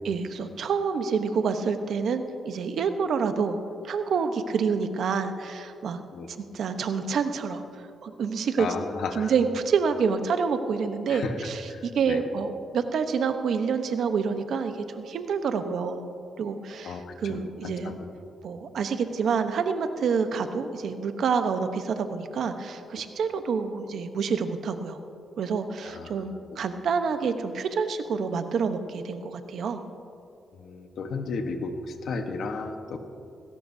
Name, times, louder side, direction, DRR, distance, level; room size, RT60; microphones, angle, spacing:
voice 1, 0.0-3.6 3.8-6.0 6.5-7.6 8.0-8.7 9.1-17.9 18.4-25.0 25.4-29.8, right 5 dB, 70° right, 8 dB, 0.9 m, -28 dB
voice 2, 8.6-9.3 11.1-11.3 11.7-12.2 16.8-18.0 25.9-26.2 26.5-26.6 30.5-33.0, left 4 dB, 70° left, 6 dB, 1.2 m, -34 dB
18.5 x 16.5 x 2.7 m, 2.6 s
cardioid pair, 95°, 0 cm